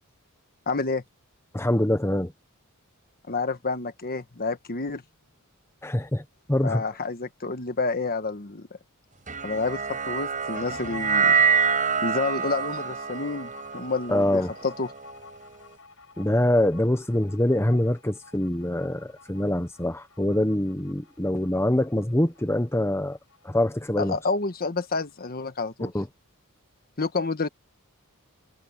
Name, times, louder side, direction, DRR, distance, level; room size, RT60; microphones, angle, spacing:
voice 1, 0.7-1.0 3.3-5.0 6.6-8.7 9.4-11.3 12.0-14.9 24.0-25.9 27.0-27.5, left 3 dB, 45° left, 1.4 m, -29 dB
voice 2, 1.5-2.3 5.8-6.2 6.5-6.8 14.1-14.5 16.2-23.2 23.4-24.2 25.8-26.1, left 1 dB, 10° left, 1.1 m, -24 dB
sound 1, 9.3-15.6, right 6 dB, 35° right, 4.9 m, -26 dB
sound 2, 10.5-23.6 23.9-24.0 24.3-25.1, left 3 dB, 65° left, 7.5 m, -46 dB
head